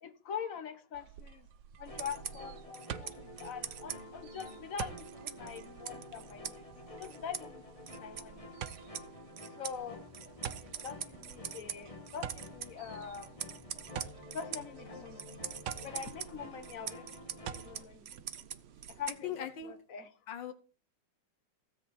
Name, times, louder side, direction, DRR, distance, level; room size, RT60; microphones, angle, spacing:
voice 1, 0.0-1.5 1.8-7.6 7.9-8.4 9.6-10.0 10.6-13.3 14.3-15.2 15.8-17.2 17.5-18.1 19.0-20.1, left 7 dB, 50° left, 1.7 m, -44 dB
sound 1, 0.9-19.1, right 9 dB, 85° right, 1.5 m, -49 dB
sound 2, 1.9-17.8, left 1 dB, 20° left, 1.7 m, -50 dB
sound 3, 1.9-19.6, right 8 dB, 55° right, 0.7 m, -46 dB
voice 2, 19.2-19.7 20.3-20.5, left 9 dB, 80° left, 1.8 m, -39 dB
16.5 x 8.1 x 4.4 m
omnidirectional pair, 2.0 m